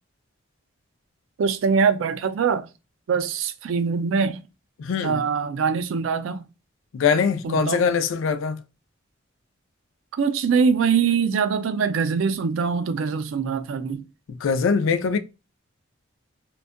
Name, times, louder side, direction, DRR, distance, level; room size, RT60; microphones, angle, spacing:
voice 1, 1.4-2.7 3.1-4.4 5.0-6.4 7.4-7.8 10.1-14.0, right 6 dB, 80° right, 0.4 m, -23 dB
voice 2, 4.8-5.2 6.9-8.6 14.4-15.2, left 6 dB, 75° left, 0.4 m, -22 dB
2.6 x 2.2 x 2.3 m
head